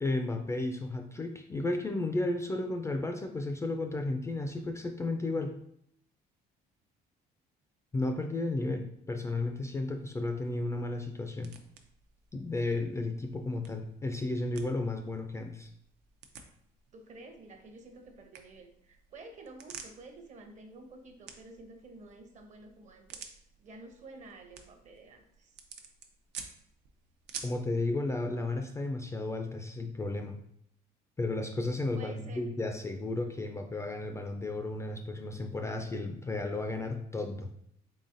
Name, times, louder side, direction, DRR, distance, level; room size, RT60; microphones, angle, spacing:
voice 1, 0.0-5.5 7.9-11.5 12.3-15.7 27.4-30.4 31.2-37.5, left 2 dB, 15° left, 5 dB, 0.3 m, -33 dB
sound 1, 9.5-27.7, right 7 dB, 85° right, 0.5 m, -52 dB
voice 2, 16.9-23.2 23.6-25.5 31.9-32.4, right 2 dB, 45° right, 5 dB, 0.7 m, -50 dB
3.9 x 3.5 x 2.5 m, 0.72 s
cardioid pair, 110°, 17 cm